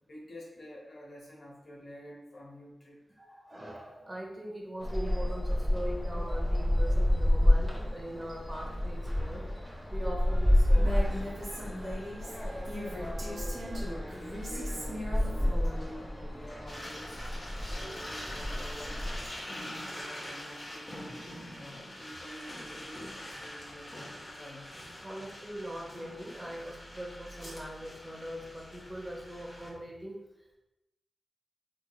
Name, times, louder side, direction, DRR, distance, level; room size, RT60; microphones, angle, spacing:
voice 1, 0.0-3.0 12.2-17.2 17.7-19.0 19.5-21.2 21.5-24.9, left 1 dB, 75° left, -4 dB, 1.1 m, -47 dB
voice 2, 3.2-9.5 9.9-11.3 25.0-30.6, equal, 30° right, -1 dB, 1.0 m, -41 dB
sound 1, 4.8-19.3, left 1 dB, 5° left, 1.2 m, -29 dB
Female speech woman speaking, 10.7-15.9, equal, 75° right, 1.1 m, -39 dB
sound 2, 16.7-29.7, left 1 dB, 30° left, 1.2 m, -44 dB
3.5 x 3.1 x 2.4 m, 0.97 s
cardioid pair, 45°, 0 cm